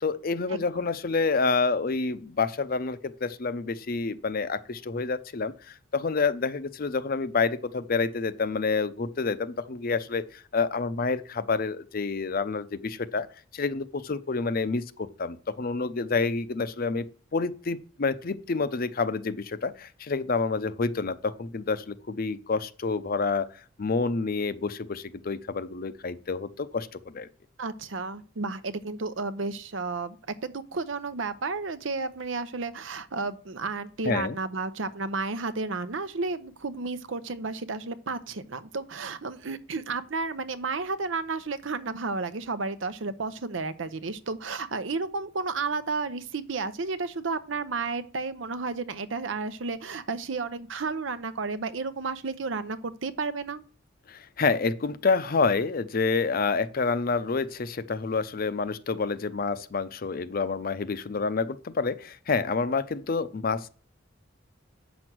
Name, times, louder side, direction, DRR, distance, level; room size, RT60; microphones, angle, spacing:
voice 1, 0.0-13.3 13.5-17.1 17.3-23.5 23.8-27.3 34.0-34.4 54.1-63.7, left 4 dB, 50° left, 0.6 m, -28 dB
voice 2, 27.6-30.2 30.4-53.6, right 4 dB, 75° right, 0.8 m, -32 dB
7.9 x 6.1 x 6.1 m
head